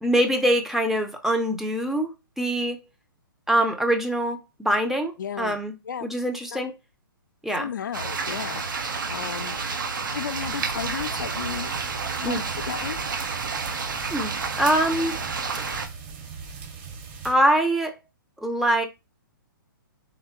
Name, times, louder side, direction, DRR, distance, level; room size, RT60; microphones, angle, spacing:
voice 1, 0.0-2.8 3.5-5.7 6.0-6.7 7.4-7.7 12.2-12.4 14.1-15.2 15.5-15.6 17.2-17.9 18.4-18.9, right 1 dB, ahead, 0.6 m, -24 dB
voice 2, 5.2-5.6 5.8-6.1 6.5-6.7 7.6-9.6 10.1-11.7 12.2-13.0, left 8 dB, 55° left, 0.5 m, -34 dB
sound 1, 7.9-15.9, right 4 dB, 60° right, 1.0 m, -30 dB
sound 2, 10.3-17.3, right 5 dB, 30° right, 1.3 m, -40 dB
4.1 x 3.6 x 2.9 m
figure-of-eight pair, 120°, 12 cm